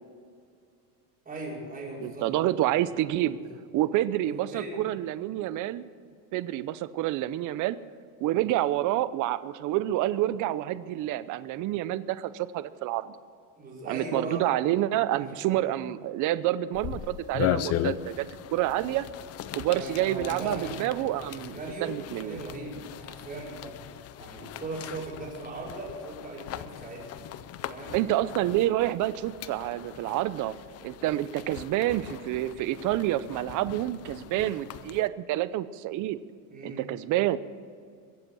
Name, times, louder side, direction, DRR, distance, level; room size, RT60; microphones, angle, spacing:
voice 1, 1.2-2.3 3.1-3.5 4.3-4.9 13.6-14.5 15.1-15.5 19.7-23.8 24.2-28.1 36.5-36.8, right 2 dB, 20° right, -4 dB, 4.9 m, -39 dB
voice 2, 2.0-3.4 3.7-5.8 6.3-7.8 8.2-13.1 13.9-18.3 18.5-19.0 19.5-22.4 27.9-30.5 30.8-36.2 36.6-37.4, right 14 dB, 40° right, 15 dB, 0.6 m, -28 dB
sound 1, 16.7-35.1, left 11 dB, 35° left, 0.5 m, -38 dB
22.5 x 8.0 x 6.2 m, 2.3 s
cardioid pair, 145°, 46 cm